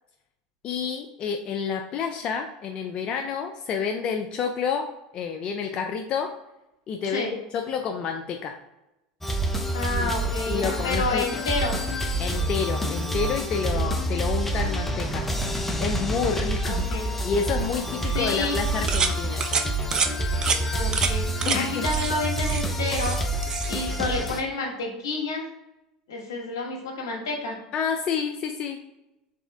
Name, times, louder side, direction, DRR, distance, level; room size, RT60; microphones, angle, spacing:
voice 1, 0.6-6.3 6.9-8.6 10.0-10.1 10.5-11.2 12.2-15.3 15.8-16.9 17.2-19.4 21.4-21.8 27.7-28.8, left 6 dB, 45° left, 4 dB, 0.4 m, -29 dB
voice 2, 7.0-7.3 9.7-11.7 13.7-13.9 16.6-17.1 18.0-18.7 20.7-25.5 26.1-27.6, left 3 dB, 80° left, 0 dB, 1.4 m, -30 dB
sound 1, 9.2-24.4, right 1 dB, 10° left, 0.7 m, -27 dB
sound 2, 18.9-19.1 19.4-19.6 19.9-20.1 20.4-20.6 20.9-21.1 21.4-21.6 21.9-22.1 22.4-23.2 23.4-23.7, right 6 dB, 30° right, 0.5 m, -26 dB
4.1 x 3.5 x 3.4 m, 0.93 s
hypercardioid pair, 90°, 2 cm